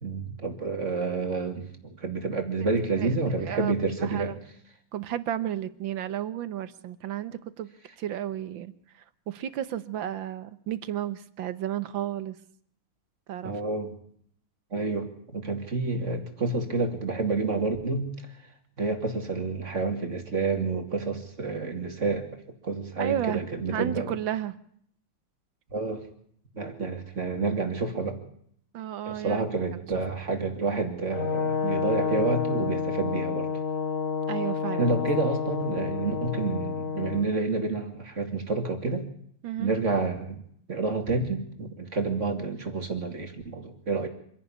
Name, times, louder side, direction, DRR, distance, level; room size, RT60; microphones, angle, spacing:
voice 1, 0.0-4.3 13.4-13.9 14.7-18.1 18.8-22.3 22.6-24.1 25.7-26.1 26.5-28.2 29.1-33.5 34.8-39.0 39.6-40.4 40.7-44.1, right 3 dB, 35° right, 6 dB, 2.7 m, -29 dB
voice 2, 3.0-3.7 4.0-4.4 4.9-7.7 8.0-8.7 9.3-12.4 13.3-13.5 23.0-23.4 23.7-24.5 28.7-29.5 34.3-34.9 39.4-39.7, right 11 dB, 70° right, 14 dB, 1.7 m, -32 dB
Brass instrument, 31.1-37.2, left 5 dB, 40° left, 2.7 m, -29 dB
26.0 x 11.0 x 9.8 m, 0.67 s
omnidirectional pair, 2.3 m